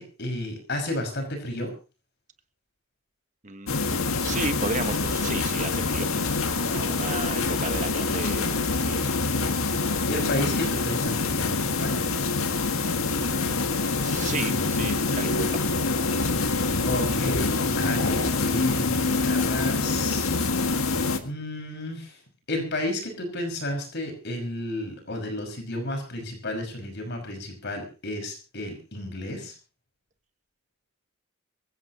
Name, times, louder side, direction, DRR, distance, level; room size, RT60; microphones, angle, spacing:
voice 1, 0.0-1.7 9.8-11.9 16.8-20.3 21.2-22.2 22.5-29.5, left 1 dB, 55° left, 4 dB, 5.5 m, -32 dB
voice 2, 3.4-6.1 6.6-9.0 14.0-15.6, right 3 dB, 35° right, 10 dB, 1.3 m, -34 dB
sound 1, 3.7-21.2, left 3 dB, 80° left, 1.8 m, -25 dB
24.0 x 15.5 x 2.9 m, 0.33 s
head